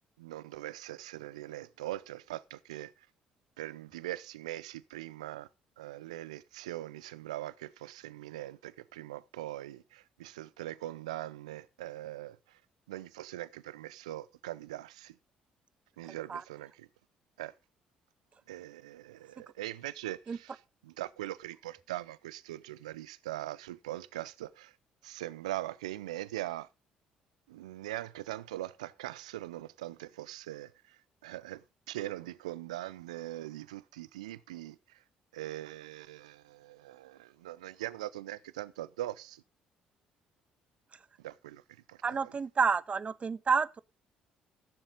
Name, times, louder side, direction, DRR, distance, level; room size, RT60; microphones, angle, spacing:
voice 1, 0.2-2.9 3.6-5.5 5.8-12.4 12.9-15.1 16.0-16.9 17.4-17.5 18.5-24.7 25.0-26.7 27.5-30.7 31.2-34.8 35.3-39.4 41.2-41.6 41.9-42.3, right 15 dB, 85° right, 0.5 m, -41 dB
voice 2, 16.1-16.4 20.3-20.4 42.0-43.8, right 5 dB, 35° right, 0.8 m, -30 dB
15.0 x 7.2 x 5.1 m
hypercardioid pair, 50°, 4 cm